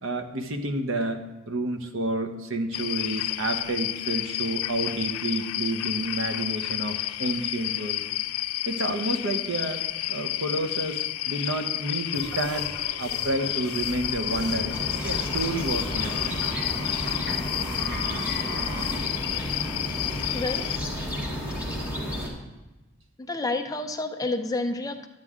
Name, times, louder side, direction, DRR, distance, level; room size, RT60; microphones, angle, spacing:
voice 1, 0.0-8.0 8.7-9.8 10.1-12.7 13.0-16.1, right 1 dB, 65° right, 6 dB, 1.0 m, -30 dB
sound 1, 2.7-20.8, left 14 dB, 90° left, 0.4 m, -31 dB
sound 2, 12.1-19.0, equal, 85° right, 2.8 m, -38 dB
sound 3, 13.8-22.3, equal, 5° right, 1.8 m, -32 dB
voice 2, 20.0-20.6 23.2-25.1, left 2 dB, 15° left, 5 dB, 0.5 m, -30 dB
10.5 x 9.7 x 3.7 m, 1.1 s
head